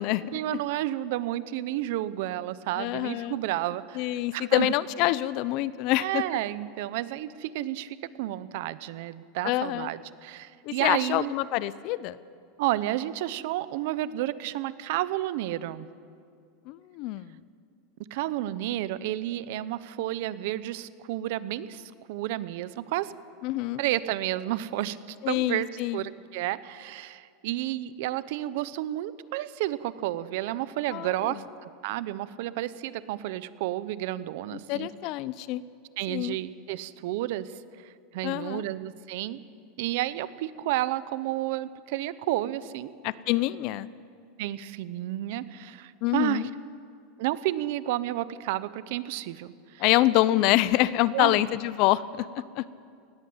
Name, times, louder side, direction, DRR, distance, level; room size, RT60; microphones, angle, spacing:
voice 1, 0.3-4.7 6.0-11.3 12.6-15.9 18.1-23.1 23.8-25.7 25.9-34.9 36.0-37.5 37.8-39.4 39.8-42.9 44.4-46.5 47.2-49.8 51.1-51.4, right 14 dB, 65° right, 16 dB, 0.8 m, -31 dB
voice 2, 2.8-3.4 3.9-6.2 9.4-9.9 10.6-12.2 16.7-17.4 23.4-23.8 25.2-26.0 30.9-31.4 34.7-35.6 36.1-36.4 38.2-38.6 43.0-43.9 46.0-46.5 49.8-52.6, left 16 dB, 45° left, 18 dB, 0.6 m, -26 dB
19.0 x 17.5 x 8.0 m, 2.3 s
supercardioid pair, 155°, 0 cm